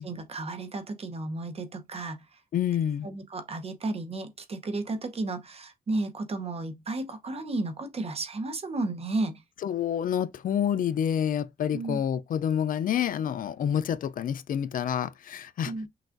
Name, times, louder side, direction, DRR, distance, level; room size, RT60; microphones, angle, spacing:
voice 1, 0.0-2.2 3.0-9.4 11.7-12.0 15.6-15.9, right 2 dB, 40° right, 0.8 m, -33 dB
voice 2, 2.5-3.1 9.6-15.7, left 9 dB, 65° left, 0.4 m, -28 dB
5.9 x 2.4 x 2.5 m
wide cardioid pair, 120°, 15 cm